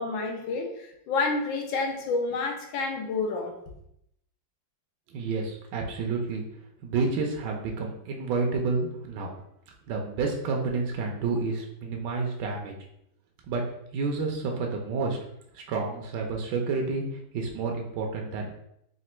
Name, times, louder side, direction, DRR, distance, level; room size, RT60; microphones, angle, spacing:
voice 1, 0.0-3.5, left 3 dB, 80° left, 1 dB, 1.5 m, -29 dB
voice 2, 5.1-6.4 6.8-9.3 9.9-12.8 13.5-13.6 13.9-15.2 15.5-18.5, right 4 dB, 70° right, 1 dB, 1.2 m, -29 dB
4.1 x 2.4 x 4.3 m, 0.76 s
omnidirectional pair, 2.1 m